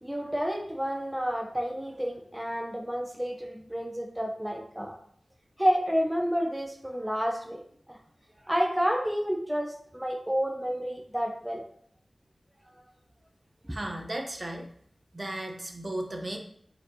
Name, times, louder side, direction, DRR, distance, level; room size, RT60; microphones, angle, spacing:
voice 1, 0.0-5.0 5.6-7.6 7.9-8.0 8.5-11.6 13.7-13.8, equal, 10° right, 0 dB, 0.8 m, -30 dB
voice 2, 13.7-14.6 15.1-16.4, right 1 dB, 40° right, 2 dB, 1.2 m, -35 dB
8.3 x 4.4 x 2.9 m, 0.62 s
wide cardioid pair, 60°, 0 cm